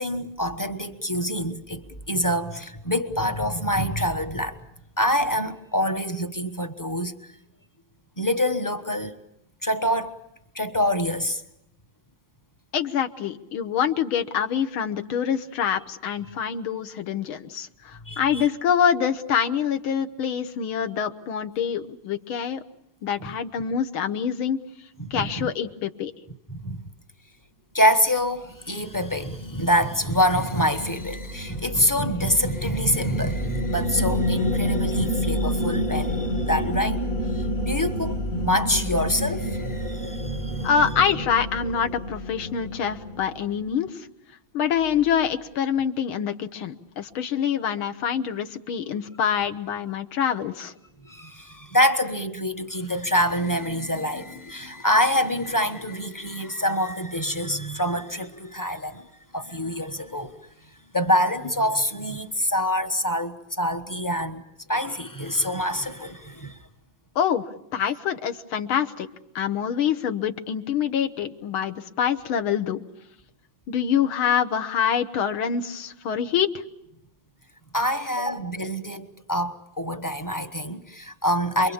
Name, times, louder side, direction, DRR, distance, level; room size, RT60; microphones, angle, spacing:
voice 1, 0.0-4.6 5.0-7.3 8.2-9.2 9.6-10.1 10.5-11.4 18.0-18.5 23.2-23.3 25.0-25.5 26.5-26.8 27.7-37.0 37.3-40.9 51.0-59.1 59.3-60.3 60.9-64.4 64.7-66.6 77.7-81.7, equal, 15° left, 0.6 m, -26 dB
voice 2, 12.7-22.6 23.0-24.6 25.1-26.1 40.6-44.1 44.5-50.7 67.2-69.1 69.4-72.8 73.7-76.6, left 8 dB, 75° left, 2.0 m, -25 dB
sound 1, 29.2-43.6, equal, 40° left, 1.9 m, -29 dB
28.0 x 23.0 x 7.2 m
omnidirectional pair, 2.3 m